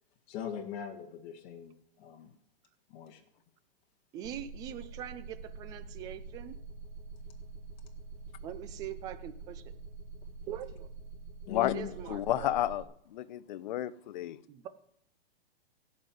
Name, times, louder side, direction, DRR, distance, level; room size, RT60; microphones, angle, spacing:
voice 1, 0.3-2.3 2.9-3.2 11.5-12.0, left 9 dB, 30° left, 1.7 m, -41 dB
voice 2, 4.1-6.6 8.4-9.7 10.5-10.9 11.6-12.6 14.5-14.7, right 11 dB, 10° right, 0.4 m, -42 dB
sound 1, 4.2-12.8, right 4 dB, 90° right, 2.8 m, -46 dB
voice 3, 12.1-12.8 13.1-14.4, left 13 dB, 50° left, 0.8 m, -31 dB
16.0 x 5.7 x 7.7 m
hypercardioid pair, 155°, 31 cm